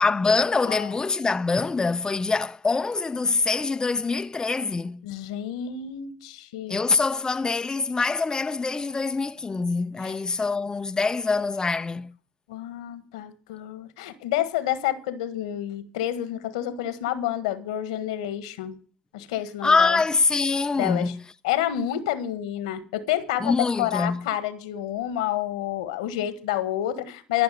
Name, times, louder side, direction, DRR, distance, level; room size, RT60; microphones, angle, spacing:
voice 1, 0.0-5.0 6.7-12.1 19.6-21.2 23.4-24.2, left 4 dB, 20° left, 0.5 m, -24 dB
voice 2, 5.0-6.8 10.0-10.1 12.5-18.8 19.1-20.0 20.7-21.1 21.4-27.4, left 12 dB, 90° left, 1.5 m, -29 dB
14.0 x 6.0 x 9.1 m
hypercardioid pair, 70°, 3 cm